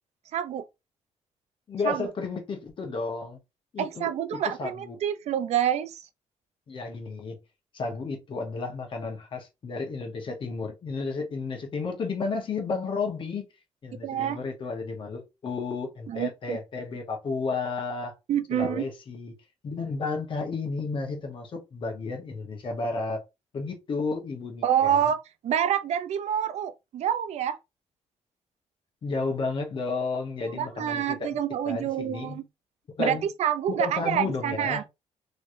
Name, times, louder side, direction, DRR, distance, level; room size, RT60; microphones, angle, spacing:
voice 1, 0.3-0.6 1.8-2.1 3.8-6.0 14.0-14.4 16.1-16.6 18.3-18.8 24.6-27.6 30.4-32.4 33.0-34.8, right 9 dB, 65° right, 0.5 m, -27 dB
voice 2, 1.7-3.4 3.7-5.0 6.7-7.4 7.7-13.5 13.8-18.1 18.5-19.3 19.6-23.2 23.5-25.0 29.0-31.4 31.6-32.4 33.0-33.3 33.7-34.8, left 4 dB, 45° left, 1.2 m, -32 dB
3.2 x 3.2 x 2.6 m
cardioid pair, 130°, 12 cm